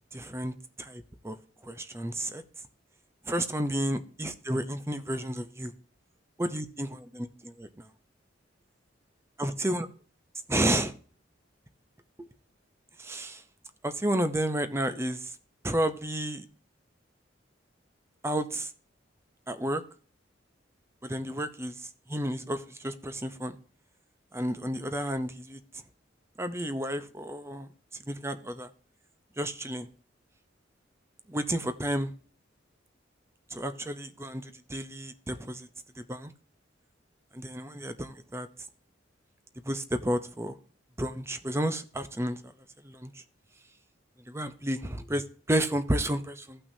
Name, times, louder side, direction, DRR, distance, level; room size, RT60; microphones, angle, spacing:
voice 1, 0.1-1.4 1.6-2.4 3.3-5.7 6.4-7.9 9.4-9.9 10.5-10.9 13.0-13.4 13.8-15.3 15.6-16.4 18.2-18.7 19.5-19.8 21.0-23.6 24.3-25.6 26.4-27.7 28.1-28.7 29.4-29.9 31.3-32.1 33.5-35.7 36.1-36.3 37.3-38.5 39.7-40.5 41.0-42.4 42.8-43.1 44.3-46.6, right 1 dB, 15° right, 9 dB, 0.7 m, -31 dB
15.5 x 5.9 x 2.7 m, 0.42 s
head